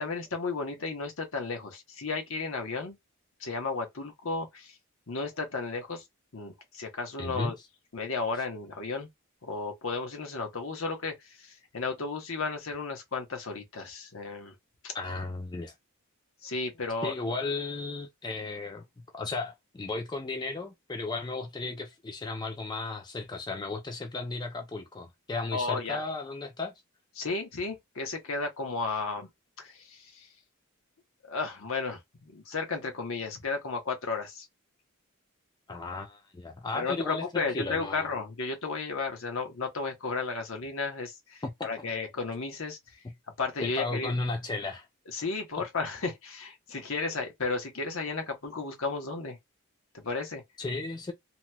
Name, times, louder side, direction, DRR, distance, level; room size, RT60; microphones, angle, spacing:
voice 1, 0.0-3.0 3.4-4.8 5.1-6.0 6.3-7.6 7.9-9.1 9.4-14.5 14.8-14.9 16.4-17.1 25.5-26.0 27.2-29.3 29.6-30.3 31.3-34.5 36.7-43.0 43.4-44.1 45.1-49.4 49.9-50.4, left 4 dB, 70° left, 1.0 m, -34 dB
voice 2, 7.2-7.5 14.9-15.7 17.0-18.8 19.1-26.7 35.7-38.2 41.4-41.5 43.6-44.9 50.6-51.1, left 3 dB, 20° left, 0.3 m, -34 dB
2.9 x 2.9 x 2.2 m
head